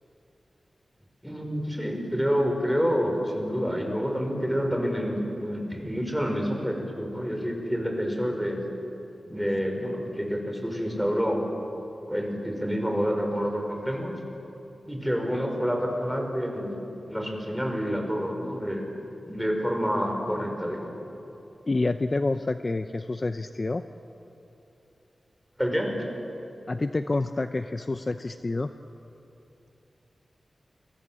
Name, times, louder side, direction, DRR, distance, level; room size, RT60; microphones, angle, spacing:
voice 1, 1.2-8.6 9.2-11.4 12.1-14.1 14.9-18.9 19.2-20.9 25.6-25.9, equal, ahead, 2 dB, 5.5 m, -28 dB
voice 2, 21.7-23.8 26.7-28.7, left 2 dB, 40° left, 9 dB, 0.7 m, -28 dB
29.5 x 24.0 x 7.7 m, 2.9 s
wide cardioid pair, 80°, 0 cm